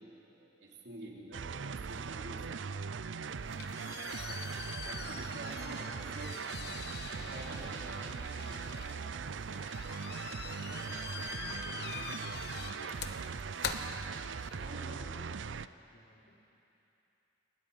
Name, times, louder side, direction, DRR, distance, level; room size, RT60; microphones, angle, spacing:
voice 1, 0.0-2.6 4.3-4.4 4.8-6.5 7.1-9.3 14.6-15.1, right 1 dB, 70° right, -2 dB, 3.7 m, -48 dB
sound 1, 1.3-15.7, right 5 dB, 85° right, 0.5 m, -40 dB
sound 2, 3.2-14.7, left 6 dB, 60° left, 1.1 m, -44 dB
voice 2, 3.3-4.0 10.2-13.1 13.8-16.4, equal, 85° left, -1 dB, 3.4 m, -58 dB
29.5 x 20.5 x 5.6 m, 2.9 s
head